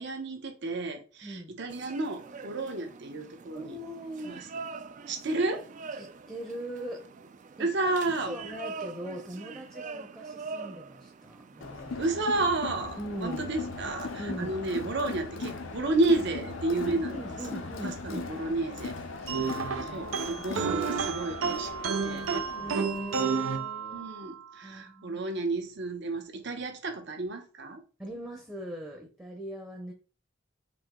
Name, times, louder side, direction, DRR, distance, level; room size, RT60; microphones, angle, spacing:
voice 1, 0.0-3.8 4.2-4.5 5.1-5.7 7.6-8.3 12.0-17.2 17.5-19.0 19.2-19.6 19.9-21.7 22.0-22.3 23.9-27.8, right 2 dB, 60° right, 0.9 m, -31 dB
voice 2, 1.2-1.5 3.5-4.5 6.0-7.1 7.6-7.9 8.2-12.0 13.0-13.4 14.2-14.6 16.8-18.2 19.3-20.0 22.6-24.1 24.6-25.2 28.0-29.9, equal, 10° right, 0.7 m, -40 dB
sound 1, 1.7-20.8, right 4 dB, 40° right, 0.4 m, -46 dB
Crowd, 11.6-23.2, left 3 dB, 75° left, 0.6 m, -39 dB
sound 2, 19.3-24.3, right 5 dB, 85° right, 0.6 m, -31 dB
5.1 x 2.7 x 3.7 m
head